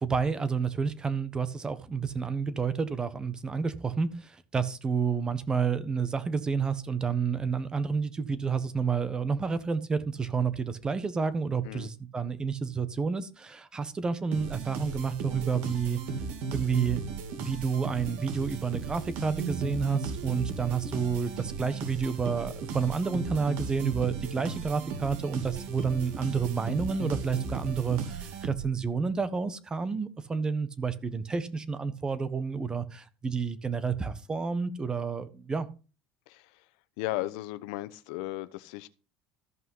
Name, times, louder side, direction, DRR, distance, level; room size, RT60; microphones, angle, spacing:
voice 1, 0.0-16.0 16.5-17.0 17.4-35.7, right 5 dB, 20° right, 1.4 m, -30 dB
sound 1, 14.3-28.9, right 5 dB, 70° right, 2.8 m, -36 dB
voice 2, 36.3-36.6 37.0-38.9, left 17 dB, 85° left, 0.9 m, -36 dB
14.0 x 5.7 x 5.6 m
supercardioid pair, 115°, 4 cm